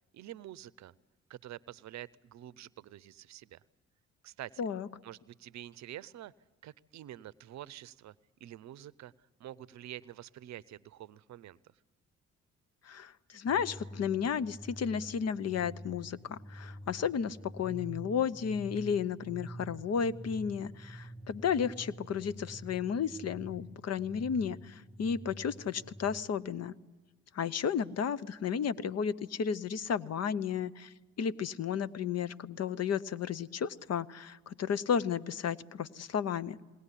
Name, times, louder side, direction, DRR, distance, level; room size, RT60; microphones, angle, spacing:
voice 1, 0.1-0.9 1.3-3.6 4.2-4.6 5.0-6.3 6.6-8.1 8.4-9.1 9.4-11.6, right 12 dB, 60° right, 20 dB, 0.6 m, -47 dB
voice 2, 12.8-26.7 27.3-36.6, left 7 dB, 55° left, 16 dB, 0.8 m, -33 dB
sound 1, 13.4-26.2, right 1 dB, 15° left, 5.9 m, -48 dB
21.0 x 18.5 x 9.9 m, 1.3 s
hypercardioid pair, 50°, 31 cm